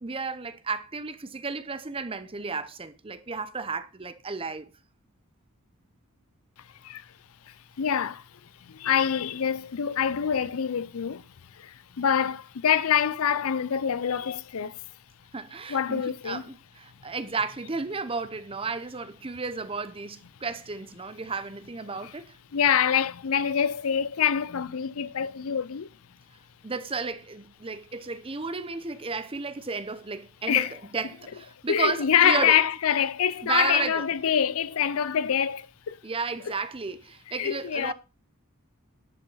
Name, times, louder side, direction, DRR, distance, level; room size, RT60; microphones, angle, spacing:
voice 1, 0.0-4.7 15.3-22.3 26.6-30.7 30.9-32.6 33.4-34.1 36.0-37.9, right 4 dB, 25° right, 0.7 m, -33 dB
voice 2, 7.8-8.2 8.6-11.2 11.6-14.8 15.7-16.4 22.0-22.1 22.5-25.9 30.5-30.7 31.7-36.0 36.5-36.6 37.4-37.9, left 8 dB, 70° left, 0.5 m, -25 dB
10.5 x 5.5 x 5.5 m
head